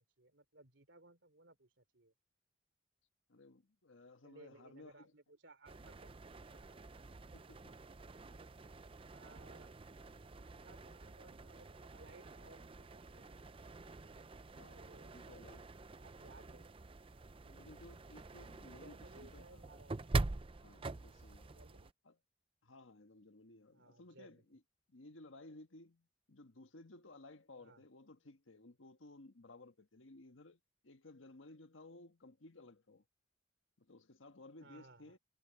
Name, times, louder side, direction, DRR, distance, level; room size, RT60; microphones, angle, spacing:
voice 1, 0.0-2.1 4.2-6.8 7.3-7.4 9.1-9.7 10.4-11.7 11.9-13.5 14.7-15.4 15.9-16.7 18.6-20.1 21.5-21.9 23.7-24.6 27.6-27.8 34.6-35.2, right 2 dB, 70° right, 3.3 m, -62 dB
voice 2, 3.3-5.1 7.3-7.9 14.5-15.6 17.4-19.6 20.6-21.6 22.0-22.2 22.6-24.6 24.9-33.0 33.8-35.2, left 2 dB, 85° left, 1.5 m, -58 dB
sound 1, 5.7-21.9, right 2 dB, 30° right, 0.5 m, -45 dB
head